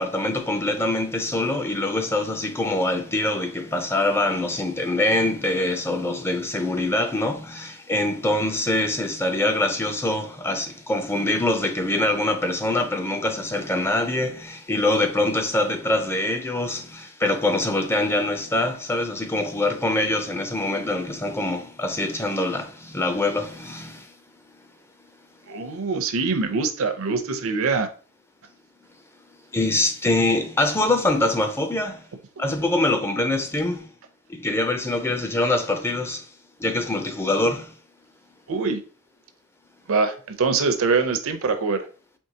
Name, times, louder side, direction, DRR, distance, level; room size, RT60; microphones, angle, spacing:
voice 1, 0.0-24.1 29.5-32.0 32.4-33.9 34.3-36.3 36.6-37.7, left 2 dB, 10° left, 0.4 m, -24 dB
voice 2, 25.5-27.9 32.4-32.5 38.5-38.8 39.9-41.9, right 4 dB, 65° right, 0.6 m, -24 dB
4.5 x 3.1 x 2.7 m
head